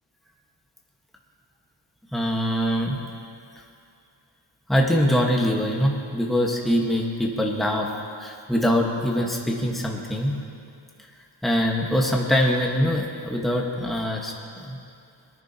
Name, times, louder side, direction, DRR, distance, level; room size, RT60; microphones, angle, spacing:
voice 1, 2.1-3.0 4.7-7.9 8.2-10.3 11.4-14.3 14.6-14.8, equal, ahead, -1 dB, 1.4 m, -23 dB
20.5 x 11.0 x 2.9 m, 2.5 s
cardioid pair, 105°, 45 cm